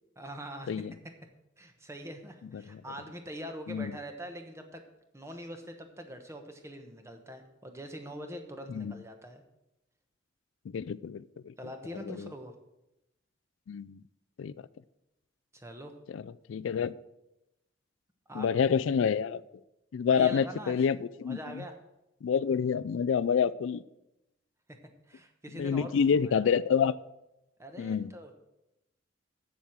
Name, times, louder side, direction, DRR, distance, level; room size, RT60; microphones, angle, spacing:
voice 1, 0.2-0.7 1.6-4.8 5.1-9.4 11.6-12.5 15.5-15.9 18.3-18.8 20.0-20.8 21.2-21.8 25.1-26.0 26.2-26.3 27.6-28.3, equal, 15° right, 5 dB, 1.1 m, -43 dB
voice 2, 10.7-11.5 12.0-12.3 13.7-14.0 14.4-14.5 16.1-17.0 18.3-19.4 19.9-21.6 22.2-23.8 25.6-27.0 27.8-28.1, left 7 dB, 85° left, 17 dB, 0.4 m, -28 dB
7.7 x 7.3 x 7.2 m, 0.90 s
head